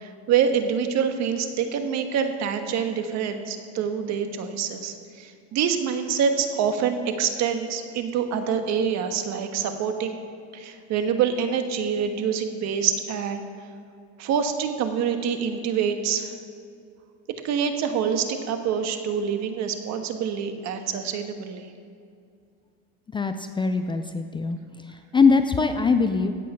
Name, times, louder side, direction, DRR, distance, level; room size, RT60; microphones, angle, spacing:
voice 1, 0.0-10.2 10.5-13.5 14.2-16.3 17.4-21.7, right 7 dB, 55° right, 7 dB, 1.4 m, -26 dB
voice 2, 23.1-24.6 24.9-26.3, left 4 dB, 15° left, 8 dB, 0.4 m, -22 dB
16.0 x 8.3 x 5.6 m, 2.3 s
cardioid pair, 135°, 33 cm